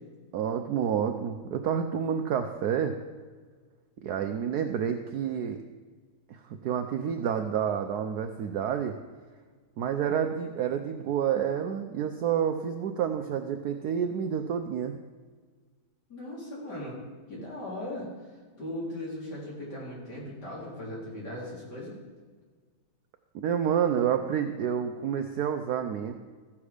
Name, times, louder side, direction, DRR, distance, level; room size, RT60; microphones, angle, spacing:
voice 1, 0.3-2.9 4.0-5.6 6.3-8.9 9.8-14.9 23.3-26.1, right 8 dB, 70° right, 6 dB, 0.9 m, -29 dB
voice 2, 16.1-17.0 17.3-18.3 18.6-22.0, left 1 dB, 55° left, -5 dB, 3.9 m, -38 dB
14.5 x 7.2 x 4.9 m, 1.5 s
omnidirectional pair, 2.2 m